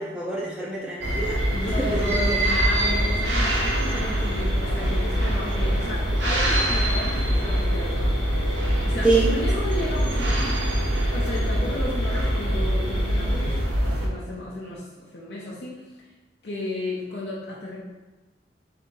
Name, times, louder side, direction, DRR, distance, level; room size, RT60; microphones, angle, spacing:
voice 1, 0.0-2.4 9.0-9.4, right 3 dB, 5° right, -6 dB, 0.4 m, -26 dB
sound 1, 1.0-14.1, equal, 80° right, 0.7 m, -24 dB
sound 2, 1.4-13.6, left 1 dB, 30° left, 0.9 m, -38 dB
voice 2, 1.5-8.1 8.6-10.6 11.1-15.8 16.4-17.8, left 1 dB, 60° left, -5 dB, 0.6 m, -34 dB
3.9 x 2.7 x 3.7 m, 1.2 s
head